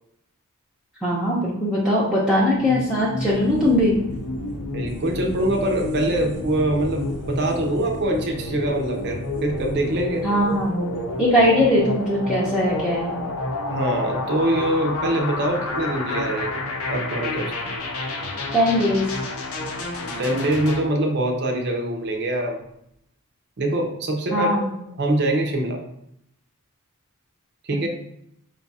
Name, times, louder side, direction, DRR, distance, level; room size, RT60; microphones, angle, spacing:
voice 1, 1.0-4.0 10.2-10.9 11.2-13.2 18.5-19.1 24.3-24.8, left 1 dB, 5° right, -8 dB, 0.6 m, -20 dB
sound 1, 2.5-20.8, left 2 dB, 70° left, 0.7 m, -30 dB
sound 2, 3.2-13.6 14.0-14.1 14.4-15.1 15.8-16.4 16.7-16.8 17.2-17.3 18.0-18.1 18.8-19.1 19.6-19.7 19.9-20.0 20.4-20.8 21.1-21.2 21.7-21.8 22.0-22.1, equal, 85° right, 0.7 m, -40 dB
voice 2, 4.7-10.2 13.7-17.5 20.0-22.6 23.6-24.5 25.0-25.8 27.6-27.9, right 1 dB, 50° right, 2 dB, 0.6 m, -24 dB
4.9 x 2.4 x 4.0 m, 0.77 s
head